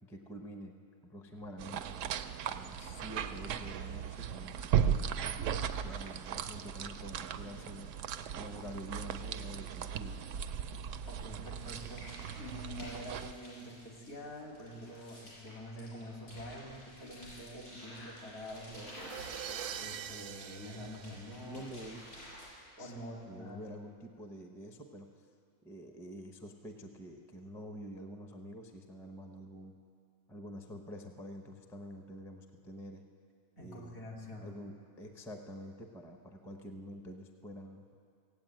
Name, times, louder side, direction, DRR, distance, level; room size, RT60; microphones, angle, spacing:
voice 1, 0.0-2.0 2.5-5.5 5.8-8.0 8.3-10.2 21.4-22.0 22.8-25.3 25.6-29.7 30.3-33.1 33.6-34.0 34.4-37.9, equal, 5° left, 4 dB, 0.5 m, -47 dB
sound 1, 1.6-13.3, right 8 dB, 65° right, 0.8 m, -37 dB
voice 2, 11.1-19.1 19.8-21.7 22.8-23.7 33.6-34.5, left 1 dB, 65° left, -2 dB, 2.9 m, -46 dB
sound 2, 11.4-22.5, equal, 85° left, 5.6 m, -52 dB
sound 3, 18.7-22.0, right 10 dB, 90° right, 1.2 m, -44 dB
16.5 x 8.0 x 9.0 m, 2.3 s
omnidirectional pair, 1.6 m